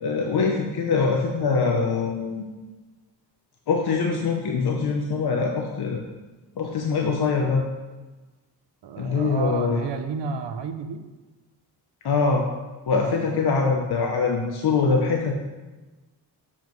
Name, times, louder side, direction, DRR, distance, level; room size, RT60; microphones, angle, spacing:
voice 1, 0.0-2.4 3.7-6.0 6.6-7.6 9.0-9.8 12.0-12.4 12.9-15.3, left 4 dB, 65° left, 1 dB, 0.8 m, -23 dB
voice 2, 8.8-11.0 13.0-13.4, right 6 dB, 80° right, 8 dB, 0.7 m, -31 dB
7.2 x 7.1 x 3.1 m, 1.2 s
wide cardioid pair, 145°, 42 cm